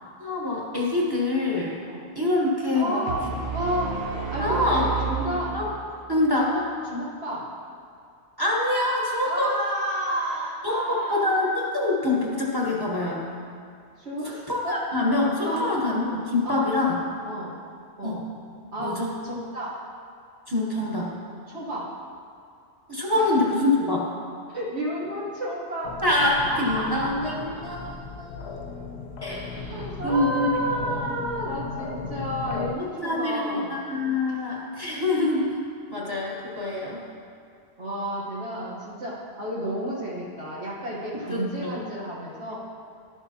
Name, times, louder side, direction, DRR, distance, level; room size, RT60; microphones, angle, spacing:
voice 1, 0.2-1.8 2.1-3.0 4.4-4.9 5.5-5.7 6.1-6.5 8.4-9.5 10.6-13.3 14.5-17.0 18.0-18.2 18.8-19.1 20.5-21.1 22.9-24.1 26.0-27.8 28.2-28.6 29.2-29.5 30.0-30.5 30.9-31.0 33.0-35.6 35.9-37.0 41.3-41.8, left 2 dB, 20° right, -4 dB, 1.1 m, -25 dB
voice 2, 2.7-3.2 3.5-3.9 4.3-5.6 6.4-6.6 6.9-7.5 9.2-11.3 14.0-14.8 15.4-15.6 16.4-16.7 17.2-17.6 18.0-18.2 18.7-19.0 19.2-19.8 21.5-21.9 23.1-23.2 24.5-25.9 26.4-27.9 29.3-33.8 37.8-42.6, right 1 dB, 65° right, -8 dB, 1.6 m, -31 dB
sound 1, 3.1-6.1, right 5 dB, 85° right, 1.3 m, -32 dB
sound 2, 25.8-32.7, left 4 dB, 70° left, 0.8 m, -36 dB
11.5 x 6.8 x 2.9 m, 2.3 s
omnidirectional pair, 1.2 m